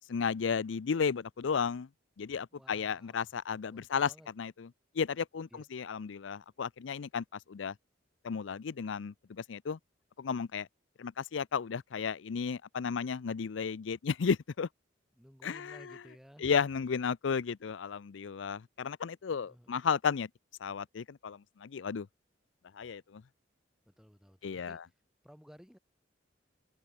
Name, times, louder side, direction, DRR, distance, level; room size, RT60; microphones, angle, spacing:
voice 1, 0.1-1.9 2.2-4.7 5.0-7.7 8.2-9.8 10.2-10.7 11.0-14.7 15.4-16.0 16.4-20.3 20.6-22.1 22.7-23.2 24.4-24.8, left 6 dB, 75° left, 0.5 m, -34 dB
voice 2, 2.5-3.3 3.7-4.3 5.5-5.6 15.2-16.5 19.3-19.8 23.9-24.8 25.2-25.8, equal, ahead, 4.8 m, -56 dB
head